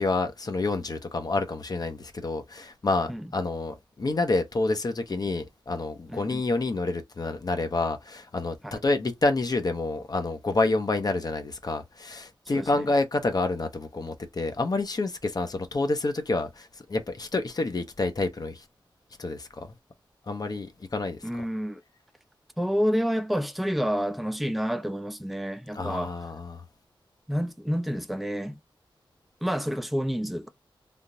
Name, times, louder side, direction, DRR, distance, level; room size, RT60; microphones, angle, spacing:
voice 1, 0.0-18.6 19.2-19.7 20.3-21.2 25.7-26.6, left 2 dB, 45° left, 0.9 m, -28 dB
voice 2, 6.1-6.4 8.6-8.7 12.5-12.9 21.2-21.8 22.6-26.2 27.3-28.6 29.4-30.5, equal, ahead, 0.5 m, -29 dB
3.6 x 2.5 x 2.7 m
wide cardioid pair, 70°, 9 cm